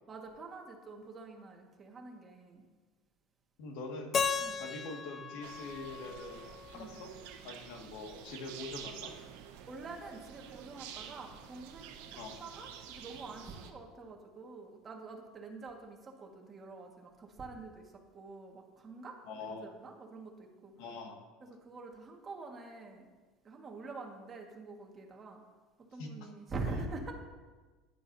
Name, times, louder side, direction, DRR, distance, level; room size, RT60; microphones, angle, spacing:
voice 1, 0.1-2.6 4.4-4.6 6.7-7.0 9.7-20.8 21.4-23.1 23.4-25.4 25.8-27.1, right 3 dB, 25° right, 1 dB, 1.7 m, -46 dB
voice 2, 3.6-4.1 4.6-7.1 7.4-9.1 12.2-12.4 19.2-19.7 20.8-21.2 26.0-26.1, left 3 dB, 75° left, 2 dB, 1.9 m, -44 dB
Keyboard (musical), 4.1-7.1, left 6 dB, 30° left, 0.4 m, -36 dB
sound 1, 5.4-13.7, right 8 dB, 80° right, 1.2 m, -49 dB
14.5 x 10.5 x 2.8 m, 1.3 s
supercardioid pair, 130°, 0 cm